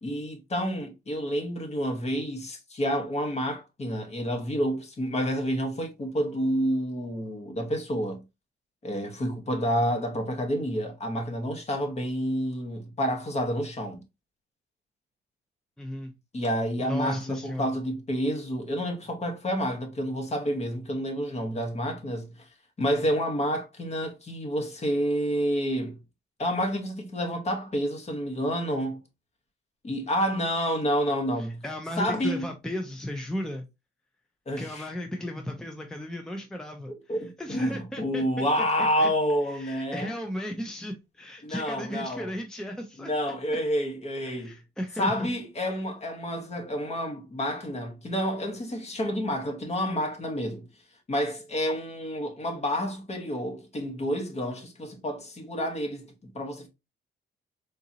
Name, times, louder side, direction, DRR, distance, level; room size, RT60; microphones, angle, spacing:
voice 1, 0.0-8.2 8.8-14.0 16.3-22.3 22.8-26.0 26.4-29.0 29.8-31.6 32.0-32.4 34.5-34.8 37.1-40.1 41.4-42.3 43.0-44.5 45.0-50.7 51.1-56.7, equal, 35° left, 1.1 m, -29 dB
voice 2, 15.8-16.1 16.8-17.8 31.4-33.7 34.6-39.1 39.5-43.1 44.3-45.3, left 1 dB, 5° left, 0.5 m, -35 dB
3.8 x 2.7 x 2.7 m
cardioid pair, 90°, 20 cm